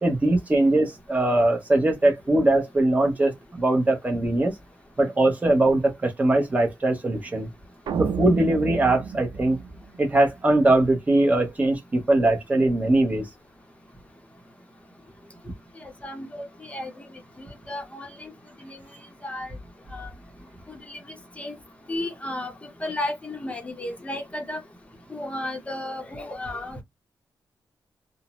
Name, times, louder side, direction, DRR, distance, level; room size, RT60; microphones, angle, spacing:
voice 1, 0.0-4.5 5.0-7.5 8.0-9.6 10.0-13.3, right 2 dB, 20° right, 0.8 m, -21 dB
sound 1, 7.9-10.3, right 7 dB, 75° right, 0.4 m, -31 dB
voice 2, 15.8-17.1 17.4-18.3 18.6-18.8 19.2-19.5 19.9-20.1 20.7-21.0 21.4-21.6 21.9-24.6 25.1-26.8, left 1 dB, 15° left, 0.7 m, -34 dB
2.5 x 2.0 x 2.9 m
wide cardioid pair, 170°, 8 cm